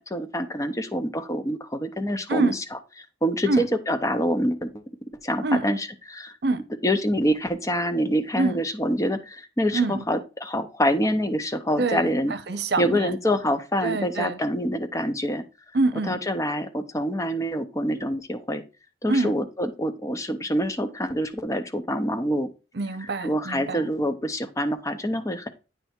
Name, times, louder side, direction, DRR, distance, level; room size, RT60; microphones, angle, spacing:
voice 1, 0.1-2.6 3.2-4.8 5.2-6.3 6.8-12.3 12.8-15.4 16.1-18.6 19.0-22.5 23.2-25.5, equal, 20° left, 0.7 m, -26 dB
voice 2, 9.7-10.1 11.8-13.1 13.8-14.4 15.7-16.2 19.1-19.3 22.7-23.9, right 3 dB, 70° right, 0.8 m, -25 dB
9.2 x 3.4 x 4.3 m
head